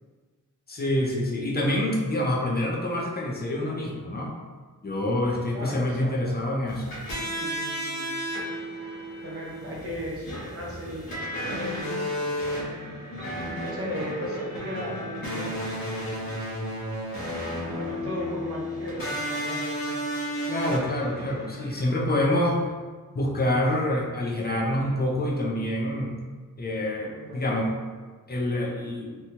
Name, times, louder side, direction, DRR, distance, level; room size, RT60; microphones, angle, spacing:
voice 1, 0.7-4.3 4.8-7.0 20.5-22.7 23.1-26.2 26.6-27.7 28.3-29.1, left 1 dB, 30° left, -3 dB, 0.4 m, -26 dB
voice 2, 5.5-6.3 7.2-8.1 9.2-12.2 13.5-15.8 16.1-16.5 17.7-19.0 19.3-19.7 22.1-22.2 27.0-27.6, equal, 40° right, -4 dB, 0.7 m, -37 dB
sound 1, 6.7-21.9, equal, 75° left, 1.0 m, -33 dB
2.8 x 2.2 x 2.9 m, 1.4 s
wide cardioid pair, 155°, 35 cm